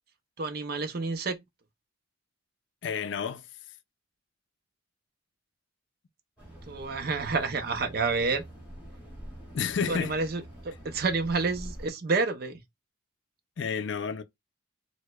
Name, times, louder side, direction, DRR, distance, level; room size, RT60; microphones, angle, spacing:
voice 1, 0.4-1.4 6.7-8.4 9.9-12.6, right 4 dB, 50° right, 0.5 m, -29 dB
voice 2, 2.8-3.4 9.5-10.1 13.6-14.2, left 6 dB, 65° left, 0.4 m, -30 dB
sound 1, 6.4-11.9, right 1 dB, 5° right, 2.0 m, -45 dB
4.6 x 2.1 x 2.2 m
head